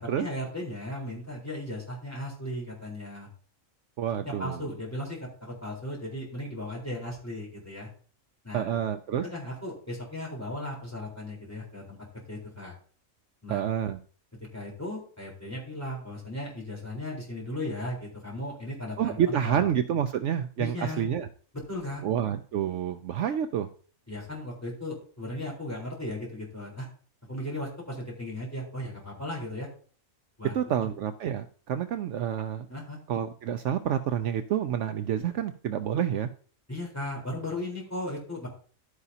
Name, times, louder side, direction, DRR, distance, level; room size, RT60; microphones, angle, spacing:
voice 1, 0.0-3.3 4.2-7.9 8.4-8.8 9.2-12.0 12.3-12.8 13.4-13.6 14.5-19.6 20.6-21.0 21.7-22.0 24.1-26.9 27.3-29.7 30.4-30.5 32.7-33.0 36.7-38.5, left 1 dB, 10° left, -3 dB, 4.0 m, -36 dB
voice 2, 4.0-4.6 8.5-9.2 13.5-14.0 19.0-21.3 22.0-23.7 30.5-32.7 33.1-36.3, right 9 dB, 70° right, 9 dB, 0.9 m, -28 dB
11.0 x 9.8 x 2.8 m, 0.44 s
omnidirectional pair, 1.4 m